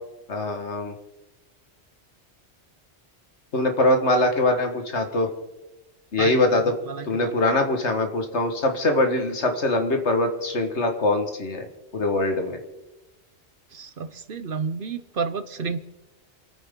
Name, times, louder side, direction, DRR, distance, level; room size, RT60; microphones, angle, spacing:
voice 1, 0.3-0.9 3.5-5.3 6.1-6.7 7.0-12.6, left 2 dB, 75° left, 5 dB, 1.9 m, -23 dB
voice 2, 6.9-7.3 13.7-15.8, right 5 dB, 55° right, 12 dB, 0.9 m, -30 dB
27.5 x 9.4 x 3.8 m, 1.1 s
omnidirectional pair, 1.2 m